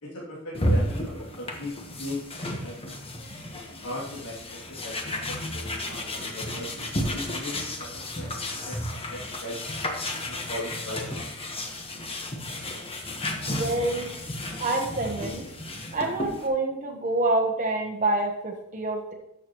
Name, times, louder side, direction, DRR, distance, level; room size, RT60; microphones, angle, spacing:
voice 1, 0.0-2.2 2.6-2.8 3.8-6.7 7.1-9.6 10.2-11.3, left 1 dB, 85° left, -6 dB, 2.8 m, -38 dB
sound 1, 0.5-16.5, left 1 dB, 25° left, 1.2 m, -32 dB
voice 2, 13.5-14.1 14.6-15.4 15.9-19.1, right 2 dB, 35° right, 0 dB, 1.1 m, -27 dB
13.0 x 6.8 x 3.1 m, 0.85 s
head